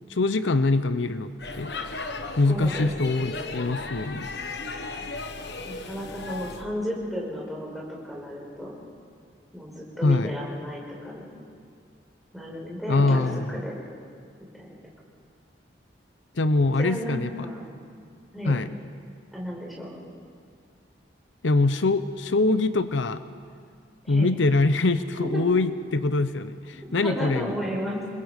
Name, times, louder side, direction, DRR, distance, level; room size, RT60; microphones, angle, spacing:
voice 1, 0.1-1.7 2.4-4.3 10.0-10.4 12.9-13.6 16.4-17.3 18.5-18.7 21.4-23.2 24.1-27.5, left 2 dB, 85° left, 12 dB, 0.8 m, -23 dB
Speech / Shout / Subway metro underground, 1.4-6.6, left 3 dB, 65° left, 1.3 m, -36 dB
voice 2, 2.4-3.7 5.7-8.7 9.5-11.2 12.3-13.3 13.5-13.7 14.6-14.7 16.8-17.6 18.3-18.6 19.3-19.9 24.0-24.3 25.2-25.4 26.8-28.0, equal, ahead, -4 dB, 5.2 m, -33 dB
29.0 x 21.5 x 5.2 m, 2.2 s
head